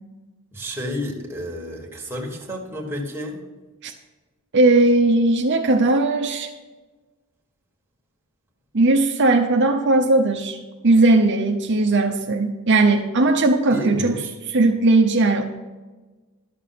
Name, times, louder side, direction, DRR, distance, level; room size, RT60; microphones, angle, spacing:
voice 1, 0.5-3.4 13.7-14.3, left 1 dB, 10° right, -2 dB, 1.7 m, -31 dB
voice 2, 4.5-6.5 8.7-10.6 10.8-14.1 14.5-15.4, right 2 dB, 55° right, 3 dB, 0.8 m, -18 dB
11.5 x 6.8 x 5.8 m, 1.3 s
head